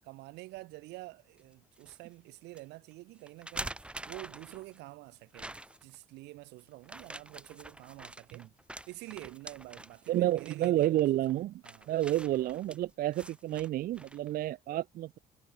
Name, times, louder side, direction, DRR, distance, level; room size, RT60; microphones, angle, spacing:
voice 1, 0.0-8.5 8.9-11.0 11.6-11.9, right 20 dB, 90° right, 7.8 m, -48 dB
sound 1, 1.4-2.0 2.5-2.6 3.3-4.8 5.3-6.0 6.8-14.3, right 1 dB, 5° right, 1.0 m, -46 dB
voice 2, 10.1-15.2, right 14 dB, 60° right, 0.6 m, -30 dB
cardioid pair, 110°, 17 cm